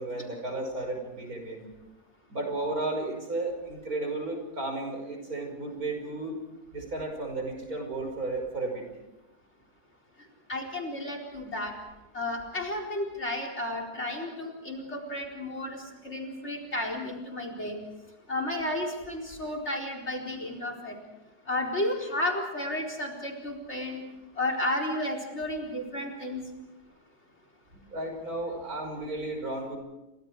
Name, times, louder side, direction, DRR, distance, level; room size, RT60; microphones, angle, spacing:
voice 1, 0.0-1.7 2.3-6.4 6.7-8.8 27.7-29.8, right 2 dB, 65° right, 3 dB, 6.1 m, -33 dB
voice 2, 10.5-11.7 12.1-17.8 18.3-21.0 21.5-24.0 24.4-26.4, left 1 dB, 45° left, 4 dB, 4.6 m, -32 dB
29.5 x 25.5 x 4.8 m, 1.0 s
omnidirectional pair, 1.7 m